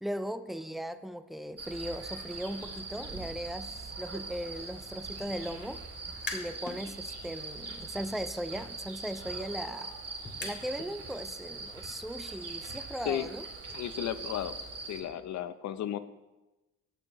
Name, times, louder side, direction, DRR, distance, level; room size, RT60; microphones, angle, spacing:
voice 1, 0.0-5.8 6.3-9.9 10.4-13.4, equal, ahead, 11 dB, 0.5 m, -38 dB
sound 1, 1.6-15.0, right 3 dB, 55° right, 2.3 m, -42 dB
sound 2, 6.1-6.8 7.2-11.0, left 3 dB, 35° left, 2.3 m, -45 dB
voice 2, 13.7-14.5 14.8-16.0, left 11 dB, 65° left, 12 dB, 0.7 m, -34 dB
17.5 x 6.4 x 3.1 m, 1.0 s
cardioid pair, 90°, 30 cm